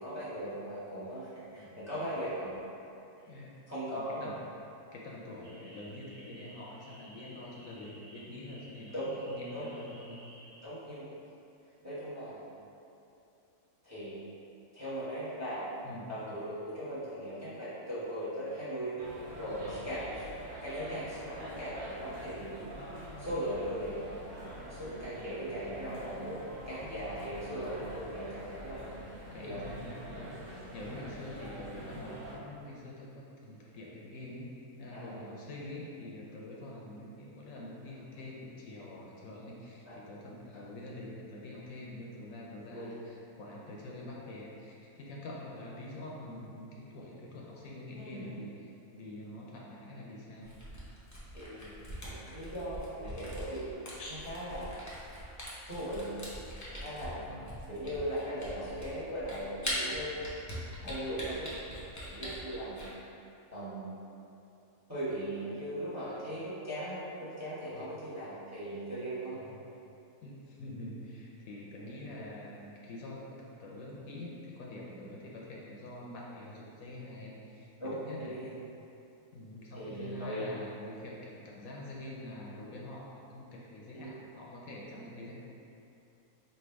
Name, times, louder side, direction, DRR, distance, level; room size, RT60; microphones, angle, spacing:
voice 1, 0.0-2.6 3.7-4.3 8.9-9.1 9.5-9.7 10.6-11.1 11.8-12.4 13.8-14.2 14.7-15.7 16.1-18.9 19.4-20.1 20.6-22.5 23.2-26.4 26.7-28.9 29.4-29.6 31.0-31.2 34.9-35.3 39.8-40.0 40.5-40.6 42.7-42.9 47.9-48.4 51.3-51.7 52.0-53.7 54.2-54.9 55.7-56.2 56.7-57.2 57.7-60.5 60.8-61.5 62.1-62.9 63.5-64.0 64.9-69.5 71.8-71.9 77.8-78.5 79.7-80.4 83.9-84.1, equal, 15° right, -11 dB, 0.9 m, -39 dB
voice 2, 3.9-4.4 4.9-8.9 9.3-10.2 15.8-16.2 19.6-19.9 29.3-50.5 54.0-54.3 57.3-57.7 67.7-68.0 69.3-69.6 70.2-78.5 79.3-85.3, left 1 dB, 75° left, -4 dB, 1.0 m, -46 dB
sound 1, 5.4-10.7, equal, 50° right, 0.4 m, -55 dB
sound 2, 19.0-32.3, right 1 dB, 75° right, 1.4 m, -45 dB
Camera, 50.4-62.9, equal, 30° left, 0.3 m, -42 dB
3.3 x 2.5 x 4.5 m, 2.7 s
omnidirectional pair, 1.6 m